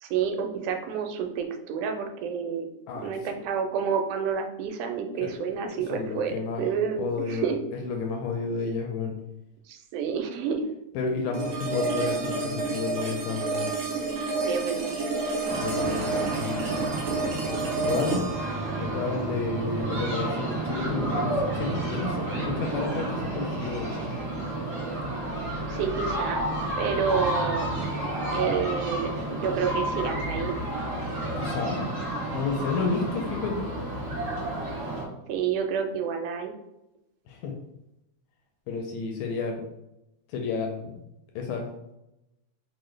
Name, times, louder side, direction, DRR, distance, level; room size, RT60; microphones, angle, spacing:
voice 1, 0.0-2.7 3.0-7.6 9.7-10.7 14.5-15.0 25.7-26.4 26.8-27.7 28.0-30.5 35.3-36.6, right 7 dB, 85° right, 5 dB, 2.1 m, -29 dB
voice 2, 5.2-6.6 7.0-7.5 7.8-9.1 10.9-13.7 15.6-16.7 17.8-18.2 18.8-23.9 31.4-31.8 32.3-33.7 37.3-37.5 38.7-39.6 40.3-41.0 41.3-41.7, left 4 dB, 80° left, 2 dB, 1.7 m, -31 dB
sound 1, 11.3-20.4, right 3 dB, 70° right, 1.5 m, -30 dB
sound 2, 15.4-35.0, right 1 dB, 55° right, 0.9 m, -31 dB
4.9 x 2.2 x 3.1 m, 0.89 s
omnidirectional pair, 3.5 m